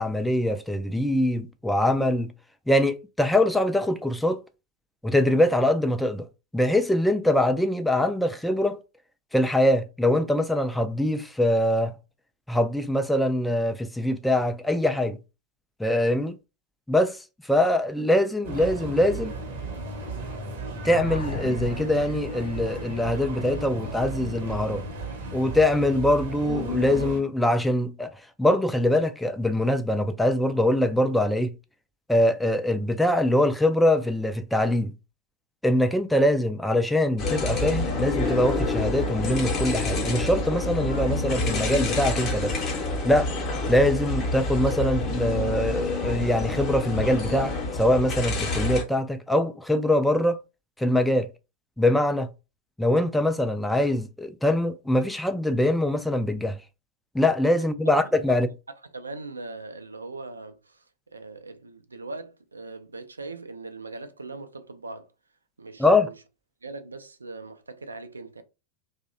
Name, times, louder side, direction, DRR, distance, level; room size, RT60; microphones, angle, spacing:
voice 1, 0.0-2.3 2.7-4.4 5.0-6.3 6.5-8.8 9.3-11.9 12.5-15.2 15.8-16.4 16.9-17.2 17.5-19.3 20.8-24.8 25.3-28.1 28.4-31.5 32.1-34.9 35.6-42.5 43.0-43.3 43.7-50.4 50.8-51.3 51.8-52.3 52.8-56.6 57.1-58.5 65.8-66.1, left 1 dB, 5° left, 0.3 m, -23 dB
sound 1, 18.4-27.2, right 2 dB, 55° right, 0.7 m, -34 dB
sound 2, 20.8-25.6, left 3 dB, 80° left, 0.6 m, -38 dB
sound 3, 37.2-48.8, left 2 dB, 30° left, 0.7 m, -28 dB
voice 2, 57.6-58.0 58.3-58.4 58.9-60.8 61.1-65.1 65.6-66.2 66.6-68.4, right 3 dB, 75° right, 0.3 m, -40 dB
2.6 x 2.0 x 2.5 m
figure-of-eight pair, 90°, 0 cm